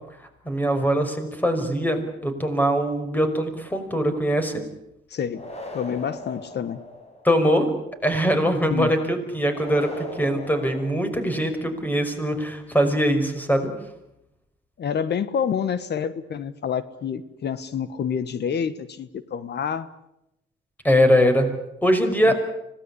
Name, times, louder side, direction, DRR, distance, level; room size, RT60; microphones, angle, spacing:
voice 1, 0.5-4.6 7.2-7.7 8.0-13.7 20.8-21.5 21.8-22.4, equal, 10° left, 7 dB, 5.5 m, -22 dB
voice 2, 5.1-5.4 5.7-6.8 8.7-8.9 14.8-19.9 22.3-22.4, left 7 dB, 60° left, 15 dB, 1.4 m, -28 dB
sound 1, 5.3-7.4 9.5-11.6, left 2 dB, 30° left, 5.6 m, -39 dB
25.5 x 18.5 x 9.9 m, 0.85 s
cardioid pair, 90°, 20 cm